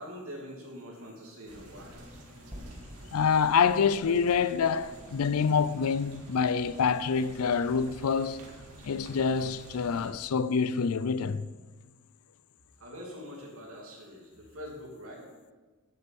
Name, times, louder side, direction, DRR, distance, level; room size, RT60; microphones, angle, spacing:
voice 1, 0.0-2.0 12.8-15.3, equal, 65° right, 2.8 m, -44 dB
sound 1, 1.5-10.1, right 1 dB, 85° right, 2.0 m, -50 dB
sound 2, 2.5-6.7, equal, 15° right, 1.9 m, -51 dB
voice 2, 3.1-8.4 8.8-11.5, left 6 dB, 75° left, 0.4 m, -26 dB
8.4 x 7.8 x 7.0 m
head